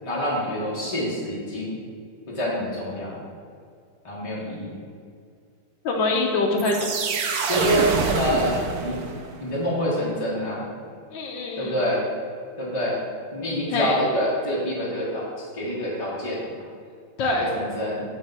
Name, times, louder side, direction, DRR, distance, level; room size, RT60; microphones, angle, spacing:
voice 1, 0.0-1.8 2.3-3.2 4.0-4.7 7.5-7.9 8.2-9.0 9.4-10.6 11.6-12.0 12.6-12.9 13.3-15.2 15.6-16.6 17.3-18.0, equal, 35° left, -6 dB, 0.5 m, -26 dB
voice 2, 5.8-6.8 11.1-11.7 13.7-14.0 17.2-17.5, left 3 dB, 75° left, 0 dB, 1.4 m, -24 dB
sound 1, 6.6-9.4, right 4 dB, 70° right, 0.9 m, -26 dB
6.2 x 3.4 x 5.3 m, 2.2 s
omnidirectional pair, 2.1 m